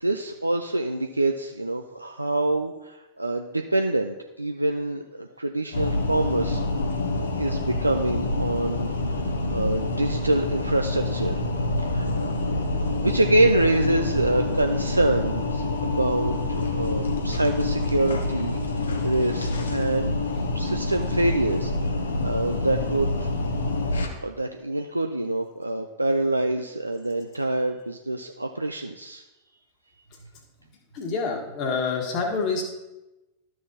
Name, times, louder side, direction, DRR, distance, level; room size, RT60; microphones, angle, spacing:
voice 1, 0.0-6.6 7.1-11.4 11.8-12.3 13.0-21.7 22.2-23.3 24.2-29.2, right 2 dB, 85° right, 5 dB, 0.3 m, -26 dB
sound 1, 5.7-24.1, left 2 dB, 70° left, 0.9 m, -27 dB
voice 2, 30.9-32.7, left 4 dB, 40° left, 1 dB, 1.6 m, -27 dB
12.5 x 6.3 x 2.8 m, 1.0 s
figure-of-eight pair, 90°, 0 cm